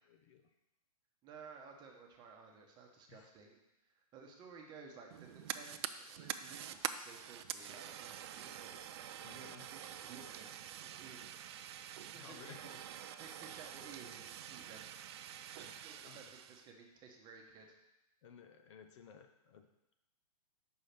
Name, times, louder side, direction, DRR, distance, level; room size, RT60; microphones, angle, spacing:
voice 1, 0.1-0.4 3.1-3.3 9.2-9.6 12.1-12.7 16.0-16.3 18.2-19.7, left 7 dB, 50° left, 7 dB, 0.7 m, -57 dB
voice 2, 1.2-8.8 9.3-10.5 10.7-11.4 12.0-14.8 15.2-17.7, right 5 dB, 20° right, 2 dB, 1.0 m, -56 dB
Fire, 5.1-16.7, right 10 dB, 45° right, 0.4 m, -46 dB
5.6 x 4.9 x 5.8 m, 0.95 s
hypercardioid pair, 135°, 20 cm